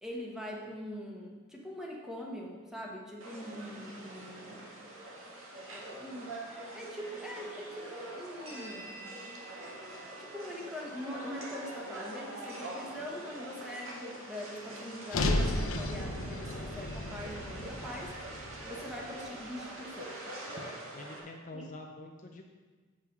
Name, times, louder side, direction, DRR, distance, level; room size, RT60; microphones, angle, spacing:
voice 1, 0.0-4.7 5.7-8.9 10.1-18.1 18.7-20.2 21.5-21.7, equal, 5° right, -2 dB, 1.2 m, -43 dB
sound 1, 3.2-21.2, right 1 dB, 70° right, 1.7 m, -44 dB
sound 2, 15.1-19.4, left 1 dB, 75° left, 0.8 m, -34 dB
voice 2, 20.5-22.5, left 2 dB, 35° left, 2 dB, 0.5 m, -47 dB
7.6 x 5.7 x 6.0 m, 1.4 s
head